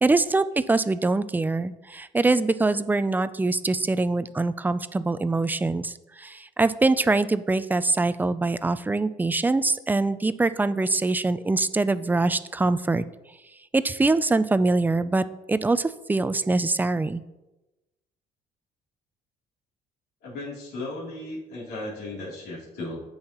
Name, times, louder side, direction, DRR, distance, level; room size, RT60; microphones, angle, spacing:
voice 1, 0.0-13.0 13.7-17.2, right 3 dB, 10° right, 13 dB, 0.4 m, -24 dB
voice 2, 20.2-23.0, left 2 dB, 75° left, -6 dB, 3.2 m, -36 dB
15.5 x 5.5 x 3.0 m, 1.0 s
cardioid pair, 110°, 17 cm